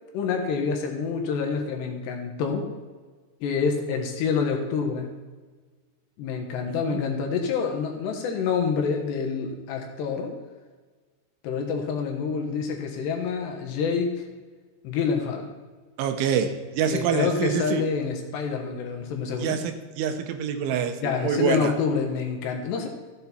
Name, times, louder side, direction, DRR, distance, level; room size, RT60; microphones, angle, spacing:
voice 1, 0.1-2.7 3.4-5.1 6.2-10.3 11.4-14.2 14.8-15.5 16.9-19.6 21.0-22.9, left 5 dB, 70° left, 2 dB, 3.3 m, -27 dB
voice 2, 16.0-17.8 19.4-21.7, right 7 dB, 85° right, 7 dB, 3.4 m, -26 dB
14.0 x 8.3 x 4.4 m, 1.4 s
omnidirectional pair, 5.4 m